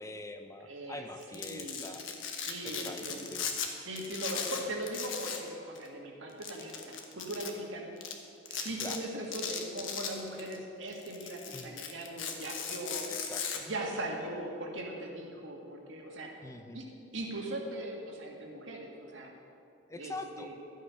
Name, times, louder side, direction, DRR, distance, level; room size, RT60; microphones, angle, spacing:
voice 1, 0.0-2.1 2.6-3.5 8.8-9.1 11.5-11.8 13.1-13.6 16.4-16.8 19.9-20.5, left 2 dB, 15° left, 6 dB, 0.5 m, -44 dB
voice 2, 0.6-1.0 1.3-1.8 2.4-3.3 3.8-7.9 8.5-13.0 13.6-16.3 16.7-16.8 17.1-19.3 20.0-20.5, right 1 dB, 80° right, 0 dB, 1.8 m, -39 dB
Domestic sounds home sounds, 1.2-3.7 4.0-5.5 5.7-5.9 6.4-7.5 8.0-8.1 8.5-9.0 9.3-10.6 10.9-13.6, left 7 dB, 80° left, 1.2 m, -37 dB
12.0 x 8.3 x 5.8 m, 2.6 s
head